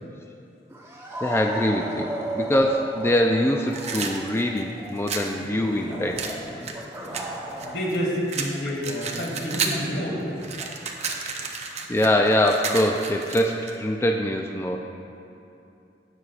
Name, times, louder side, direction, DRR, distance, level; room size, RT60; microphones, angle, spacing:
sound 1, 0.7-8.1 8.4-12.3, right 1 dB, 15° right, 1.0 m, -36 dB
voice 1, 1.2-6.7 10.6-10.8 11.9-14.8, left 1 dB, 15° left, 2 dB, 0.4 m, -23 dB
sound 2, 3.7-5.3 6.2-8.0 8.3-9.9 10.2-13.8, right 5 dB, 40° right, 0.7 m, -32 dB
voice 2, 5.4-6.0 6.5-6.6 7.0-7.1 7.6-10.3, equal, 80° left, -3 dB, 2.2 m, -29 dB
18.0 x 6.3 x 2.5 m, 2.7 s
head